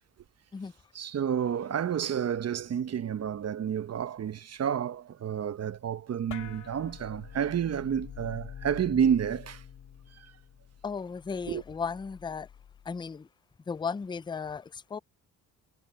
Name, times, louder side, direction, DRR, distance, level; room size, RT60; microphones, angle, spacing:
voice 1, 0.9-9.6 11.5-11.6, right 8 dB, 50° right, 0.9 m, -30 dB
sound 1, 6.3-13.0, left 8 dB, 60° left, 2.5 m, -47 dB
voice 2, 10.8-12.5 12.9-13.3 13.7-15.0, left 5 dB, 15° left, 0.4 m, -35 dB
cardioid pair, 100°, 33 cm